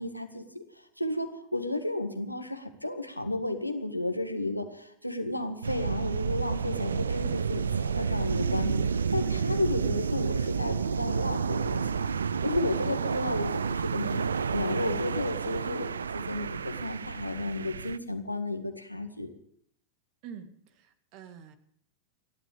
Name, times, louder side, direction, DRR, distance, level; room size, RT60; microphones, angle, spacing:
voice 1, 0.0-12.1 12.4-19.3, left 1 dB, 90° left, 6 dB, 1.8 m, -33 dB
sound 1, 5.6-18.0, right 6 dB, 70° right, 0.5 m, -30 dB
voice 2, 20.2-21.6, right 8 dB, 45° right, 9 dB, 2.0 m, -45 dB
30.0 x 11.5 x 3.5 m, 0.69 s
figure-of-eight pair, 90°, 0 cm